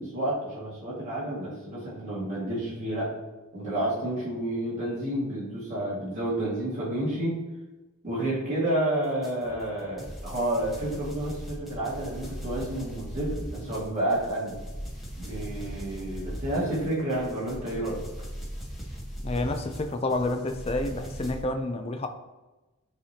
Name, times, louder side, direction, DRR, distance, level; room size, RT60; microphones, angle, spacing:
voice 1, 0.0-3.1 3.5-7.4 8.0-14.5 15.2-18.0 21.3-21.4, right 1 dB, 35° right, 1.9 m, -30 dB
sound 1, 9.2-21.4, equal, ahead, 1.1 m, -39 dB
voice 2, 19.2-22.1, left 2 dB, 25° left, 0.4 m, -29 dB
10.0 x 3.4 x 2.8 m
head